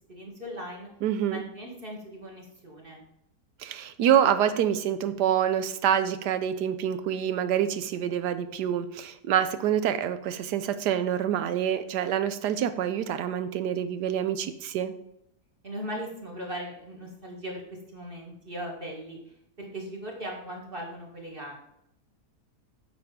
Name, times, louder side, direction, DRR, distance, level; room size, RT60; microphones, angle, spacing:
voice 1, 0.1-0.9 1.3-3.0 15.6-21.5, equal, 35° right, -1 dB, 2.1 m, -39 dB
voice 2, 1.0-1.4 3.6-14.9, right 9 dB, 90° right, 12 dB, 1.3 m, -26 dB
8.9 x 5.8 x 5.1 m, 0.79 s
omnidirectional pair, 1.7 m